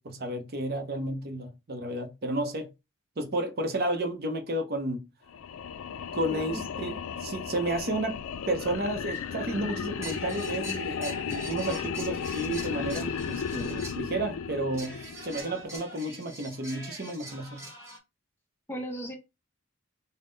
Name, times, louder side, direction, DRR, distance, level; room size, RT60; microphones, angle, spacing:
voice 1, 0.0-2.7 3.2-5.1 6.1-17.6, right 1 dB, 50° right, 0.6 m, -32 dB
sound 1, 5.3-15.6, left 7 dB, 80° left, 0.4 m, -35 dB
voice 2, 6.3-7.0 18.7-19.1, right 1 dB, 10° left, 0.7 m, -38 dB
sound 2, 9.1-9.3 10.0-14.3 14.7-18.0, right 1 dB, 15° right, 1.1 m, -44 dB
3.6 x 2.1 x 3.8 m
head